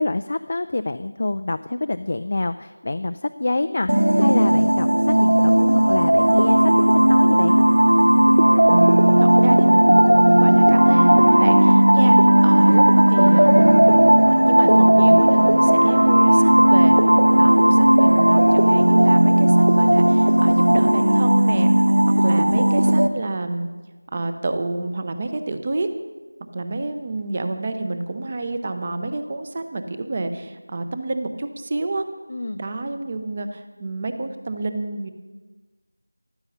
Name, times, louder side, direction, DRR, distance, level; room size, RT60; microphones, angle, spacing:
voice 1, 0.0-7.6 12.0-12.2 32.3-32.6, left 2 dB, 35° left, 10 dB, 0.3 m, -26 dB
sound 1, 3.9-23.1, right 1 dB, 65° right, 0.9 m, -15 dB
voice 2, 8.6-8.9 9.2-12.2 12.4-16.9 17.3-21.7 22.2-23.7 24.1-25.9 26.5-32.0 32.6-35.1, right 2 dB, 20° right, 9 dB, 0.8 m, -28 dB
14.5 x 12.5 x 5.6 m, 1.3 s
figure-of-eight pair, 170°, 0 cm